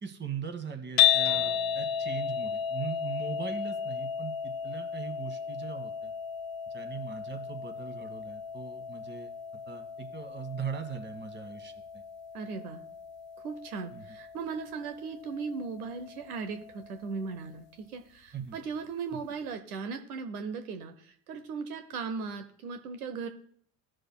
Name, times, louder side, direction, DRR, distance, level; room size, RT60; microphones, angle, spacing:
voice 1, 0.0-6.1 6.7-9.3 9.7-12.0 13.9-14.0 18.3-18.6, right 7 dB, 25° right, 7 dB, 1.5 m, -40 dB
sound 1, 1.0-17.2, left 9 dB, 65° left, 0.7 m, -34 dB
sound 2, 1.2-3.1, left 2 dB, 15° left, 1.5 m, -54 dB
voice 2, 12.3-12.8 13.4-23.3, right 5 dB, 80° right, 7 dB, 0.9 m, -37 dB
16.0 x 6.5 x 2.2 m, 0.64 s
hypercardioid pair, 70°, 44 cm